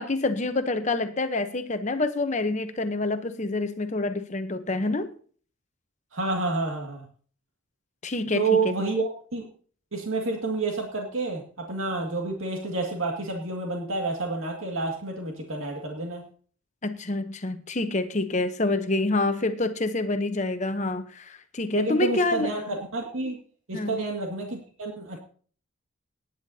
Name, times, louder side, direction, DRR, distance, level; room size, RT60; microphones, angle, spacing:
voice 1, 0.0-5.1 8.0-8.7 16.8-22.5 23.7-24.0, left 2 dB, 35° left, 0.8 m, -27 dB
voice 2, 6.1-7.1 8.3-9.5 9.9-16.2 21.7-23.4 23.7-25.2, right 3 dB, 80° right, 2.1 m, -29 dB
19.0 x 10.0 x 2.8 m
head